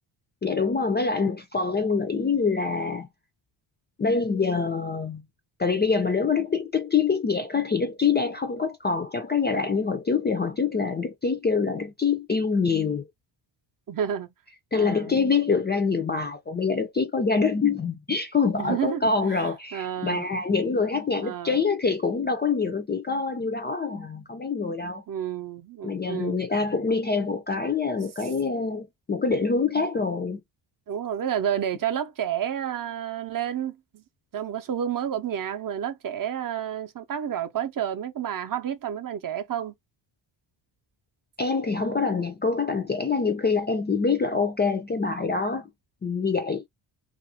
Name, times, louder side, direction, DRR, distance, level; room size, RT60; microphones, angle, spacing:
voice 1, 0.4-3.1 4.0-5.2 5.6-13.1 14.7-25.0 25.8-30.4 41.4-45.7 46.0-46.6, left 4 dB, 25° left, 0.4 m, -25 dB
voice 2, 13.9-14.3 14.7-15.1 18.6-19.0 19.7-20.3 21.2-21.6 25.1-26.4 30.9-34.0 34.3-39.7, right 9 dB, 40° right, 0.6 m, -30 dB
2.5 x 2.3 x 2.7 m
cardioid pair, 100°, 50 cm